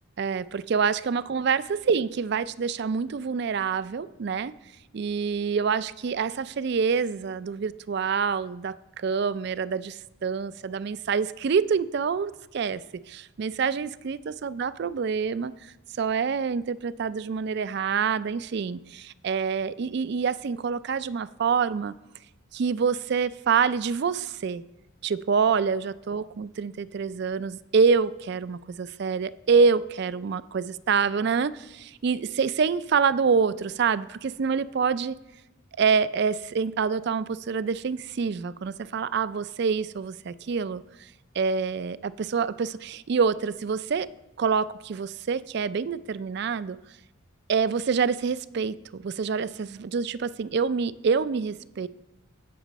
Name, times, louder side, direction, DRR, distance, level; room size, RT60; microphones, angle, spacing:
voice 1, 0.2-4.5 4.9-12.8 13.1-15.5 16.0-21.9 22.5-24.6 25.0-35.2 35.8-40.8 41.4-44.1 44.4-46.8 47.5-51.9, right 5 dB, 50° right, 17 dB, 0.3 m, -26 dB
16.0 x 6.1 x 4.0 m, 1.0 s
head